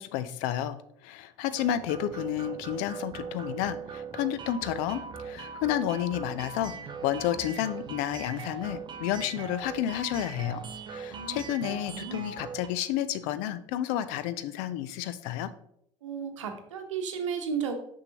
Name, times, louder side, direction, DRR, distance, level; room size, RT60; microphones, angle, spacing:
voice 1, 0.0-10.6 10.9-15.5, left 11 dB, 55° left, 14 dB, 0.5 m, -31 dB
sound 1, 1.6-12.7, right 6 dB, 30° right, 0.6 m, -40 dB
voice 2, 11.1-12.3 16.0-17.8, right 6 dB, 70° right, 5 dB, 0.9 m, -34 dB
6.6 x 5.3 x 2.9 m, 0.71 s
figure-of-eight pair, 65°, 16 cm